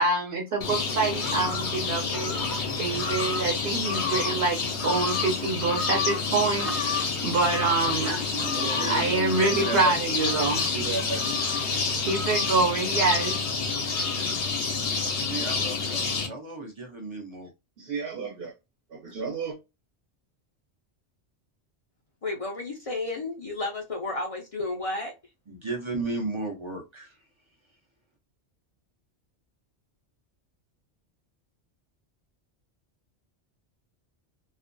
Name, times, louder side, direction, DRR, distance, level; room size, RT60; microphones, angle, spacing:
voice 1, 0.0-2.4 2.8-4.6 4.8-6.7 7.2-8.2 8.6-11.2 12.0-13.4 17.8-18.5 19.0-19.6, right 3 dB, 65° right, 0.9 m, -26 dB
sound 1, 0.6-16.3, left 4 dB, 80° left, 0.9 m, -28 dB
voice 2, 7.8-9.1 9.5-9.9 15.2-17.5 25.5-27.2, right 2 dB, 40° right, 0.4 m, -35 dB
voice 3, 22.2-25.1, left 2 dB, 50° left, 0.4 m, -32 dB
2.4 x 2.2 x 2.5 m
omnidirectional pair, 1.1 m